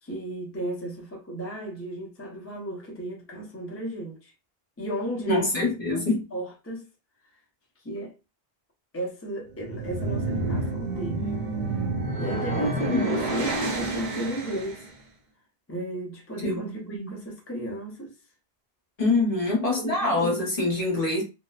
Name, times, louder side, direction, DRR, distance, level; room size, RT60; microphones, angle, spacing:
voice 1, 0.0-4.3 4.8-6.0 6.3-6.9 7.8-8.1 8.9-11.3 12.2-14.9 15.7-18.2 19.6-20.4, right 1 dB, 15° left, 0.5 m, -34 dB
voice 2, 5.3-6.3 12.3-13.0 16.4-17.2 19.0-21.2, left 2 dB, 40° left, 0.9 m, -25 dB
sound 1, 9.5-14.9, right 2 dB, 55° right, 0.6 m, -29 dB
2.8 x 2.0 x 2.3 m
omnidirectional pair, 1.1 m